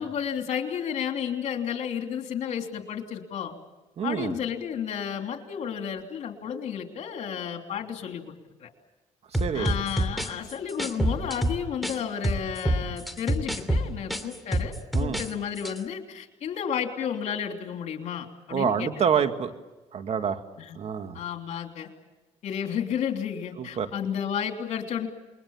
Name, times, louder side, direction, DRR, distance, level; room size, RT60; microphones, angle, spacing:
voice 1, 0.0-3.5 4.0-8.7 9.5-18.9 20.6-20.8 21.1-21.9 22.4-25.1, left 8 dB, 75° left, 4 dB, 3.3 m, -32 dB
voice 2, 4.0-4.4 9.3-9.7 14.9-15.2 18.5-19.5 19.9-20.4 20.7-21.2 23.6-23.9, right 7 dB, 60° right, 7 dB, 2.1 m, -27 dB
sound 1, 9.3-12.0 12.2-15.3 15.6-15.8, right 1 dB, ahead, 2.8 m, -26 dB
28.5 x 22.0 x 7.3 m, 1.1 s
cardioid pair, 90°, 12 cm